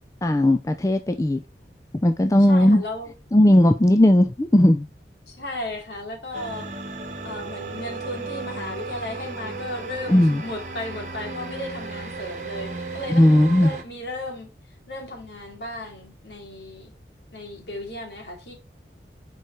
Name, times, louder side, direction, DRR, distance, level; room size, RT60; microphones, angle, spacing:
voice 1, 0.2-1.4 2.0-2.8 3.3-4.9 10.1-10.4 13.1-13.7, left 1 dB, 20° left, 0.4 m, -17 dB
voice 2, 2.5-3.1 5.3-6.7 7.2-14.5 14.9-16.9 17.3-18.5, left 1 dB, 80° left, 2.6 m, -35 dB
sound 1, 6.3-13.8, right 3 dB, 45° right, 1.1 m, -35 dB
6.8 x 4.8 x 3.1 m
head